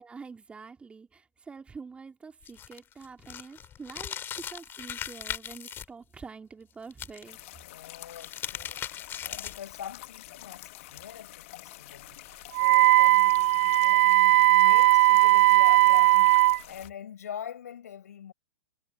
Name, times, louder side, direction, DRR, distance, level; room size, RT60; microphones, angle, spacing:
voice 1, 0.0-7.4, right 5 dB, 15° right, 3.2 m, -46 dB
sound 1, 2.4-5.8 6.9-7.5 8.0-9.7, left 10 dB, 25° left, 4.9 m, -38 dB
sound 2, 7.2-16.9, left 18 dB, 50° left, 2.1 m, -47 dB
voice 2, 7.5-12.1 12.5-18.3, left 9 dB, 70° left, 6.0 m, -43 dB
Wind instrument woodwind instrument, 12.5-16.6, right 17 dB, 50° right, 0.6 m, -19 dB
figure-of-eight pair, 110°, 9 cm